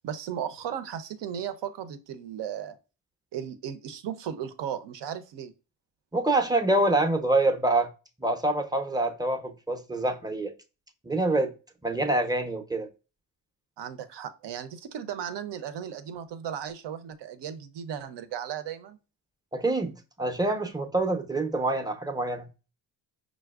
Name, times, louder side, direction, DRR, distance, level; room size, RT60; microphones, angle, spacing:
voice 1, 0.0-2.8 3.3-5.5 13.8-19.0, right 9 dB, 65° right, 0.6 m, -36 dB
voice 2, 6.1-7.9 8.2-10.5 11.0-11.5 11.8-12.9 19.5-22.5, right 2 dB, 10° right, 0.6 m, -26 dB
4.9 x 2.0 x 2.3 m
supercardioid pair, 50°, 47 cm